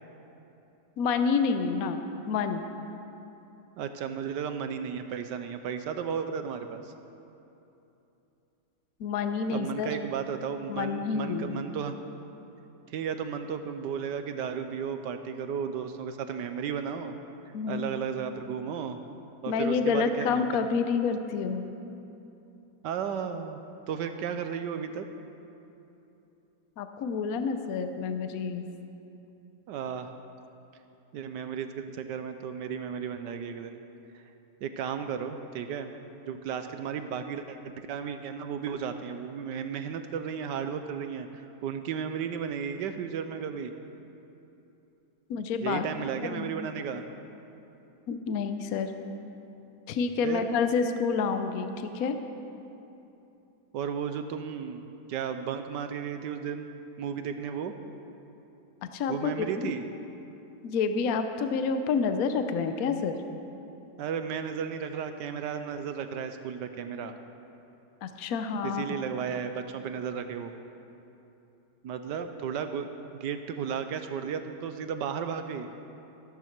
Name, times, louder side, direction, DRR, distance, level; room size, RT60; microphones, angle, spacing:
voice 1, 1.0-2.6 9.0-9.9 10.7-11.6 17.5-17.9 19.5-21.7 26.8-28.7 45.3-45.8 46.2-46.5 48.1-48.9 49.9-52.2 58.9-59.7 60.6-63.1 68.0-68.8, left 5 dB, 65° left, 8 dB, 1.0 m, -28 dB
voice 2, 3.8-6.9 9.5-12.0 12.9-17.2 17.7-19.0 19.4-20.4 22.8-25.1 29.7-30.1 31.1-33.8 34.1-34.2 34.6-35.9 36.3-43.7 45.6-47.0 50.2-50.5 53.7-54.8 55.1-57.7 59.1-59.8 64.0-67.1 68.6-70.5 71.8-75.7, right 7 dB, 75° right, 8 dB, 1.2 m, -34 dB
14.5 x 13.0 x 4.5 m, 2.9 s
omnidirectional pair, 2.0 m